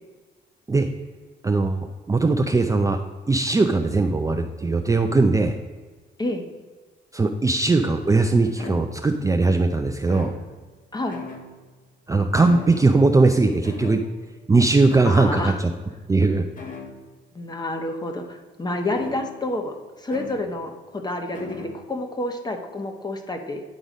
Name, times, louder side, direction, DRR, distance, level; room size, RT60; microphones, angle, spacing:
voice 1, 1.4-3.0 3.3-5.6 7.1-10.3 12.1-14.0 14.5-15.7 16.1-16.4, right 3 dB, 15° right, 5 dB, 0.5 m, -20 dB
sound 1, 8.6-9.3 10.0-10.8 11.1-11.8 12.4-13.1 13.6-14.5 14.9-15.4 16.6-17.1 18.9-19.6 20.1-20.6 21.3-21.9, left 4 dB, 40° left, 1.4 m, -39 dB
voice 2, 15.0-15.6 17.3-23.6, left 2 dB, 20° left, 5 dB, 1.1 m, -29 dB
9.5 x 3.9 x 5.0 m, 1.4 s
cardioid pair, 90°, 20 cm